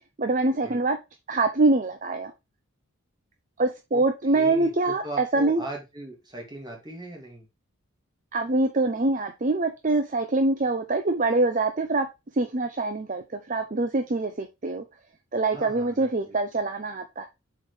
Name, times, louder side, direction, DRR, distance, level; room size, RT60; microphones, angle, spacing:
voice 1, 0.2-1.0 1.3-2.3 3.6-5.6 8.3-12.1 12.3-14.8 15.3-17.3, right 2 dB, 40° right, 6 dB, 0.6 m, -24 dB
voice 2, 4.3-7.5 15.5-16.3, right 1 dB, 20° right, 0 dB, 2.4 m, -39 dB
7.2 x 4.6 x 3.3 m, 0.23 s
head